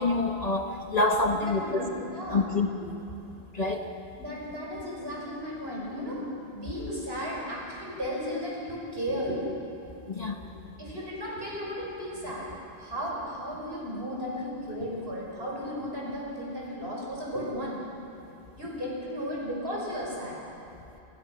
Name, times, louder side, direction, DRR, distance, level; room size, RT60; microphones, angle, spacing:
voice 1, 0.0-1.8 2.3-3.0 3.5-3.8 10.1-10.4, left 3 dB, 40° left, 3 dB, 1.3 m, -27 dB
voice 2, 1.3-2.4 4.2-9.5 10.8-12.5 12.8-17.8 18.6-20.4, equal, 70° right, -4 dB, 6.7 m, -35 dB
28.0 x 21.5 x 6.1 m, 2.9 s
omnidirectional pair, 1.1 m